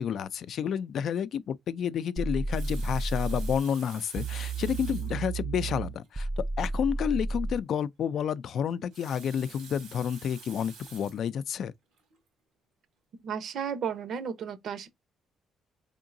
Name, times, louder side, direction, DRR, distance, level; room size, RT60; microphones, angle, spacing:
voice 1, 0.0-11.7, left 8 dB, 65° left, 0.4 m, -30 dB
sound 1, 2.2-3.6 4.2-7.6, right 3 dB, 25° right, 0.3 m, -32 dB
Water tap faucet, 2.3-5.2 6.0-6.1 6.4-6.5 8.7-11.3 12.0-12.2, right 6 dB, 90° right, 2.0 m, -49 dB
voice 2, 13.2-14.9, right 7 dB, 65° right, 0.8 m, -34 dB
3.8 x 3.6 x 2.5 m
cardioid pair, 90°, 0 cm